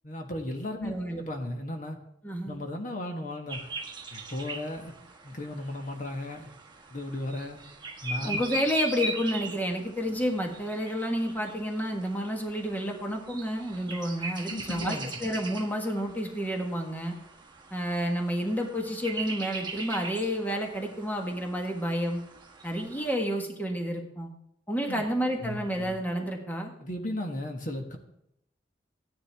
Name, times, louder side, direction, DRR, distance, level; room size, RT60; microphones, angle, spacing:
voice 1, 0.0-2.0 2.4-3.6 4.1-4.9 5.2-6.5 6.9-7.6 8.0-8.4 14.5-15.2 24.9-25.0 25.4-25.6 26.8-28.0, left 1 dB, 45° left, 3 dB, 1.3 m, -35 dB
voice 2, 0.8-1.2 2.2-2.6 8.2-17.1 17.7-22.2 22.6-24.3 24.7-26.7, equal, 10° left, 1 dB, 1.5 m, -30 dB
sound 1, 3.5-23.1, right 2 dB, 25° right, 1.4 m, -40 dB
15.0 x 10.0 x 3.5 m, 0.77 s
head